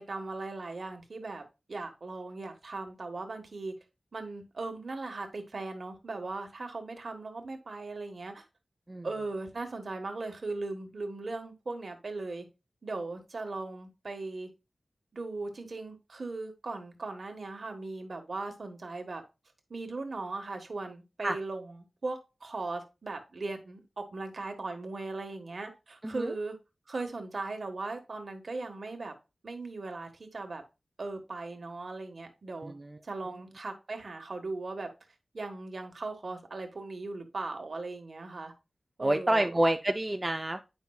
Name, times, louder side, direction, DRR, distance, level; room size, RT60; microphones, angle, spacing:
voice 1, 0.1-3.7 4.1-8.4 9.0-12.5 12.8-14.5 15.1-19.2 19.7-26.6 26.9-29.1 29.4-30.6 31.0-32.7 33.0-34.9 35.3-38.5 39.0-39.5, right 3 dB, 55° right, 5 dB, 1.4 m, -38 dB
voice 2, 32.6-33.0 39.0-40.6, right 1 dB, 20° right, 5 dB, 0.4 m, -28 dB
8.9 x 5.4 x 2.3 m, 0.27 s
wide cardioid pair, 105°, 0 cm